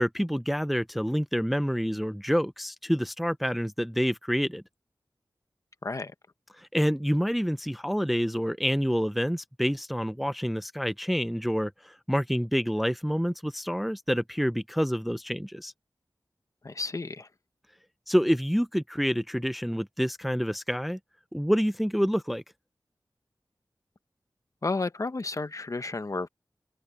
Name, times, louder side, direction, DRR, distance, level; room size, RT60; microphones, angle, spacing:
voice 1, 0.0-4.6 6.6-15.7 18.1-21.0 21.3-22.4, equal, ahead, 0.5 m, -27 dB
voice 2, 5.8-6.1 16.6-17.3 24.6-26.3, left 3 dB, 45° left, 1.0 m, -32 dB
open air
wide cardioid pair, 75°, 8 cm